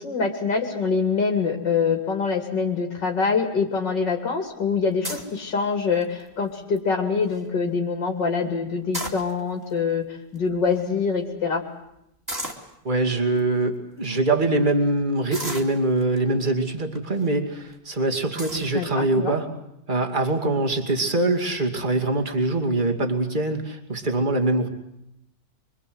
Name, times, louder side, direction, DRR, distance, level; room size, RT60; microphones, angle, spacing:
voice 1, 0.0-10.0 10.3-11.6 18.7-19.3, left 5 dB, 85° left, 2 dB, 3.5 m, -25 dB
sound 1, 5.0-5.4 6.0-6.3 6.8-6.9 7.1-7.4 8.7-9.6 10.3-10.4 10.7-10.8 12.3-12.7 13.4-13.5 14.0-14.2 15.3-16.2 16.9-17.3 17.7-17.8 18.4-18.7, right 1 dB, 10° right, 2.8 m, -33 dB
voice 2, 12.8-19.5 19.9-24.7, right 2 dB, 25° right, 3 dB, 2.6 m, -23 dB
26.0 x 23.5 x 8.0 m, 0.80 s
omnidirectional pair, 1.9 m